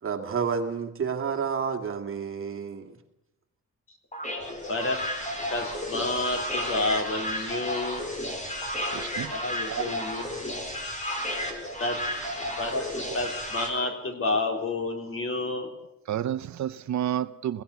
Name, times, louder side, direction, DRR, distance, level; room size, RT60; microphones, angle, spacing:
voice 1, 0.0-3.0, right 6 dB, 45° right, 2.4 m, -30 dB
sound 1, 4.1-13.7, equal, 25° left, 4.6 m, -33 dB
voice 2, 4.7-5.0 5.5-8.1 9.3-10.5 11.0-11.1 11.8-12.0 12.6-15.7, left 2 dB, 45° left, 3.7 m, -30 dB
voice 3, 8.9-9.3 9.7-10.0 16.1-17.6, right 11 dB, 70° right, 0.7 m, -30 dB
20.5 x 17.0 x 8.2 m
wide cardioid pair, 130°, 29 cm